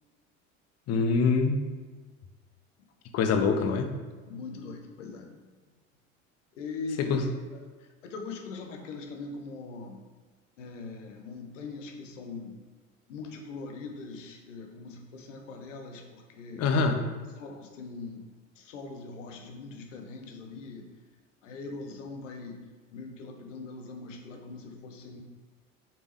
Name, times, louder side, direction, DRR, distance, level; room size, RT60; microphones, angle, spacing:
voice 1, 0.9-1.6 3.1-3.9 7.1-7.3 16.5-17.0, left 4 dB, 40° left, 7 dB, 0.9 m, -24 dB
voice 2, 4.3-5.3 6.5-7.6 8.0-10.0 10.6-12.6 13.1-16.7 17.4-18.2 18.6-20.9 21.4-22.6 22.9-25.2, left 3 dB, 70° left, 3 dB, 1.1 m, -41 dB
7.4 x 5.4 x 3.2 m, 1.4 s
figure-of-eight pair, 65°, 39 cm